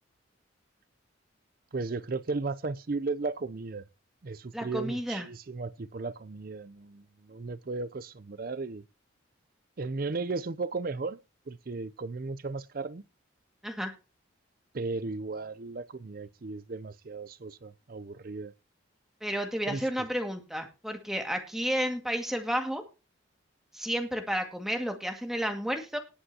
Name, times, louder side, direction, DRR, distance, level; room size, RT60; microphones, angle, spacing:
voice 1, 1.7-3.9 4.2-8.8 9.8-11.2 11.5-13.0 14.7-18.5 19.7-19.9, right 3 dB, 45° right, 0.5 m, -35 dB
voice 2, 4.5-5.3 13.6-13.9 19.2-22.8 23.7-26.0, equal, ahead, 1.9 m, -31 dB
19.5 x 7.8 x 2.8 m
head